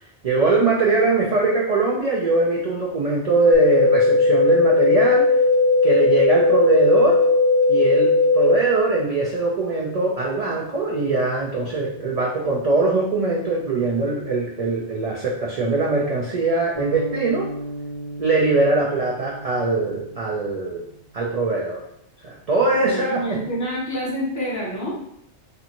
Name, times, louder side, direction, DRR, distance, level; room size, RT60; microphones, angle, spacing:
voice 1, 0.2-5.3 5.8-7.2 7.7-17.5 18.2-20.8 21.1-21.8 22.2-23.4, right 3 dB, 70° right, -3 dB, 0.3 m, -21 dB
sound 1, 3.5-8.5, left 3 dB, 70° left, 0.9 m, -17 dB
sound 2, 16.7-21.0, equal, 40° right, 0.8 m, -35 dB
voice 2, 22.7-24.9, equal, 20° left, -4 dB, 0.6 m, -27 dB
2.6 x 2.5 x 2.8 m, 0.74 s
omnidirectional pair, 1.2 m